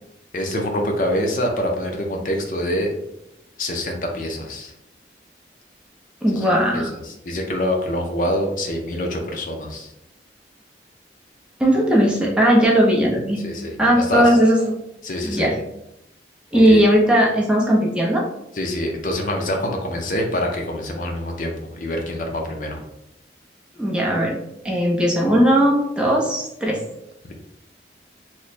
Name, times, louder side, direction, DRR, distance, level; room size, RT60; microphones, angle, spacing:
voice 1, 0.3-2.9 3.6-4.7 6.4-9.9 13.4-14.3 15.0-15.5 16.5-16.8 18.5-22.8, left 1 dB, 45° left, 2 dB, 0.5 m, -25 dB
voice 2, 6.2-6.9 11.6-13.4 13.8-14.8 15.2-15.6 16.5-18.3 23.8-24.4 24.6-26.8, equal, 5° right, -3 dB, 0.5 m, -17 dB
3.1 x 2.1 x 4.0 m, 0.82 s
head